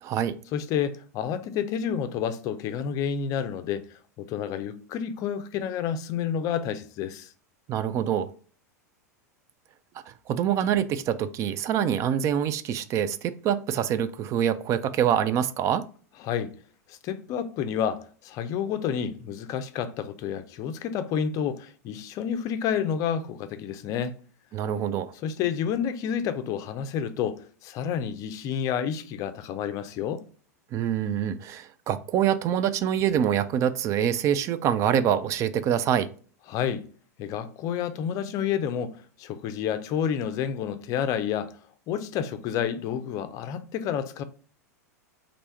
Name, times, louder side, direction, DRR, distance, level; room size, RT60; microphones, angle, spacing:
voice 1, 0.0-0.4 7.7-8.3 10.1-15.8 24.5-25.1 30.7-36.1, right 9 dB, 35° right, 0.3 m, -25 dB
voice 2, 0.5-3.8 4.2-7.3 16.2-16.5 16.9-24.1 25.2-30.2 36.5-36.8 37.2-38.9 39.2-41.5 41.9-44.2, left 8 dB, 40° left, 0.5 m, -29 dB
3.3 x 2.6 x 4.2 m
figure-of-eight pair, 90°, 9 cm